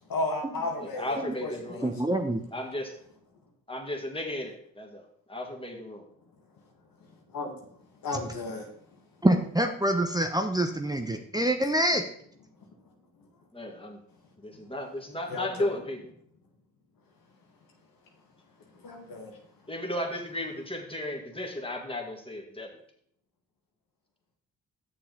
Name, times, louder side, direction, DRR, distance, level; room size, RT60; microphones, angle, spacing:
voice 1, 0.1-1.9 7.3-7.5 8.0-8.7 15.3-15.8 18.8-19.4, left 2 dB, 75° left, 1 dB, 1.8 m, -34 dB
voice 2, 0.8-2.0 2.5-2.9 3.7-6.0 13.5-14.0 14.4-16.0 19.7-22.7, left 1 dB, 15° left, 2 dB, 2.0 m, -35 dB
voice 3, 1.8-2.4 8.1-8.2 9.2-12.0, right 1 dB, 10° right, 5 dB, 0.9 m, -26 dB
7.5 x 6.8 x 3.9 m, 0.63 s
supercardioid pair, 45°, 34 cm